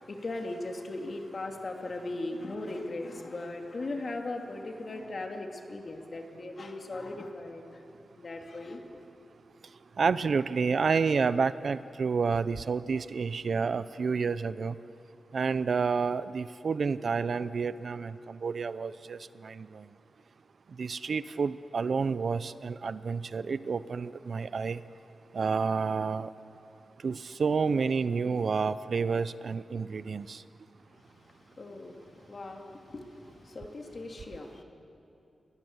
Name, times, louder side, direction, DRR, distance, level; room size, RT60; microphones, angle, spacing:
voice 1, 0.0-7.8 8.2-8.8 28.2-28.3 30.9-34.6, left 2 dB, 40° left, 3 dB, 2.6 m, -39 dB
voice 2, 10.0-14.7 15.3-19.8 20.8-24.8 25.3-26.3 27.0-30.4, right 5 dB, 55° right, 15 dB, 0.5 m, -29 dB
29.0 x 23.0 x 8.1 m, 2.9 s
wide cardioid pair, 170°, 0 cm